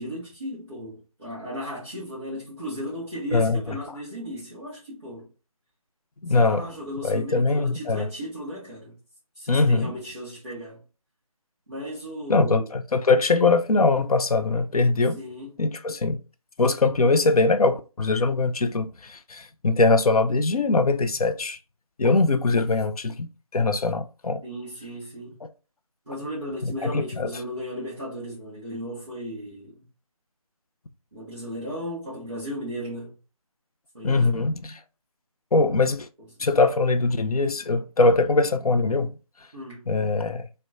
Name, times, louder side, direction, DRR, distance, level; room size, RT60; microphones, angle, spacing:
voice 1, 0.0-5.3 6.3-8.9 9.3-10.8 11.7-12.7 15.1-15.5 24.4-25.4 26.1-29.9 31.1-33.2 33.9-34.5 39.5-39.8, equal, 5° left, 0.5 m, -36 dB
voice 2, 3.3-3.8 6.2-6.7 7.0-8.1 9.5-9.9 12.3-15.2 15.6-16.2 16.6-21.6 22.0-24.4 25.4-25.5 26.6-27.3 34.0-34.8 35.5-36.1 36.4-39.1 39.9-40.5, left 3 dB, 85° left, 0.4 m, -22 dB
4.1 x 2.1 x 2.3 m
figure-of-eight pair, 165°, 18 cm